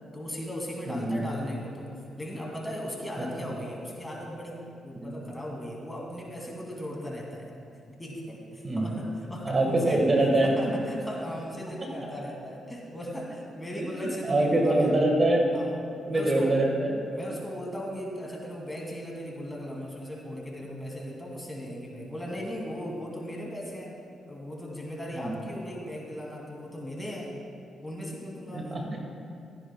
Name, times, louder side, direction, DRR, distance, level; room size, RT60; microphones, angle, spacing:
voice 1, 0.1-1.9 2.2-7.5 8.0-10.0 10.4-14.9 15.5-15.7 16.1-16.6 17.1-23.9 24.3-27.3 27.8-28.8, equal, 15° left, -2 dB, 2.6 m, -37 dB
voice 2, 0.9-1.2 3.2-3.3 4.9-5.1 8.6-8.9 9.4-10.7 13.8-15.5 16.1-17.0 25.1-25.3 28.5-29.0, right 1 dB, 40° right, 0 dB, 1.6 m, -25 dB
14.5 x 10.0 x 2.3 m, 2.6 s
supercardioid pair, 60°, 0 cm